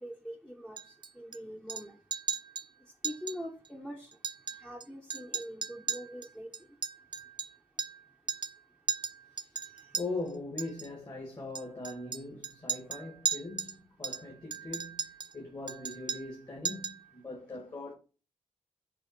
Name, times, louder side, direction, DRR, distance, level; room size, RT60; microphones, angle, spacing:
voice 1, 0.0-2.0 3.0-4.1 4.6-6.5, equal, 5° left, 1.1 m, -43 dB
Chink clink, 0.8-1.4 1.7-2.7 3.0-3.4 3.7-3.8 4.1-4.8 5.1-8.0 8.3-8.6 8.9-10.0 10.6-10.9 11.6-13.8 14.0-15.3 15.7-16.4 16.7-17.0, right 6 dB, 35° right, 0.4 m, -36 dB
voice 2, 9.9-17.9, left 2 dB, 30° left, 2.0 m, -41 dB
6.9 x 3.7 x 5.9 m
wide cardioid pair, 95°, 13 cm